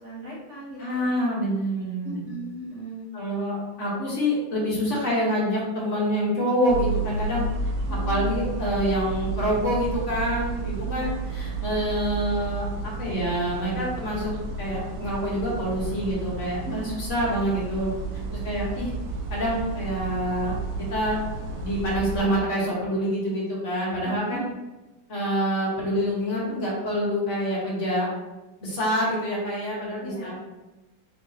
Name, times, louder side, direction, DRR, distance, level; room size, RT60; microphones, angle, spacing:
voice 1, 0.0-1.1 2.0-3.1 7.8-8.2 10.8-11.1 16.6-17.0 24.0-24.4 30.0-30.4, right 2 dB, 45° right, -5 dB, 1.3 m, -38 dB
voice 2, 0.8-2.2 3.1-7.4 8.1-17.9 18.4-18.9 19.3-20.6 20.9-21.2 21.6-24.5 25.1-28.1 28.6-30.4, equal, 45° left, -5 dB, 1.4 m, -26 dB
sound 1, 6.7-22.2, right 3 dB, 80° right, 1.4 m, -31 dB
4.5 x 4.0 x 2.8 m, 1.1 s
omnidirectional pair, 2.1 m